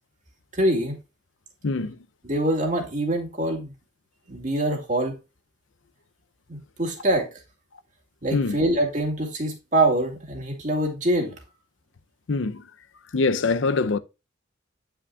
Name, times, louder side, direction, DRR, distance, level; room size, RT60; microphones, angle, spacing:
voice 1, 0.5-1.0 2.2-3.7 4.3-5.2 6.5-7.3 8.2-11.3, right 1 dB, 40° right, 2.2 m, -24 dB
voice 2, 1.6-2.0 8.3-8.6 12.3-12.7 13.1-14.0, left 3 dB, 85° left, 0.6 m, -24 dB
9.5 x 5.9 x 2.4 m
head